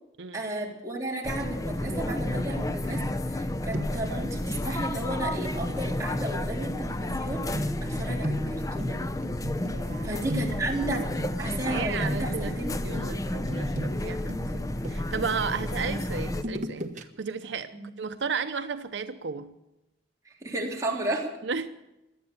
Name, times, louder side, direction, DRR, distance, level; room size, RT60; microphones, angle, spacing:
voice 1, 0.3-9.0 10.0-11.0 11.4-13.2 17.7-17.9 20.4-21.3, right 2 dB, 20° right, -3 dB, 3.6 m, -33 dB
sound 1, 1.2-16.4, left 1 dB, 20° left, 0.6 m, -31 dB
sound 2, 2.9-3.4 3.7-4.2 5.6-5.8 7.5-11.7 12.0-12.5 13.5-15.3 16.3-17.0 17.4-17.5, equal, 40° right, 1.2 m, -35 dB
voice 2, 9.7-10.4 10.8-11.1 11.6-17.7 18.0-19.5 21.4-21.7, right 5 dB, 75° right, 9 dB, 0.7 m, -34 dB
17.5 x 12.0 x 6.9 m, 0.92 s
head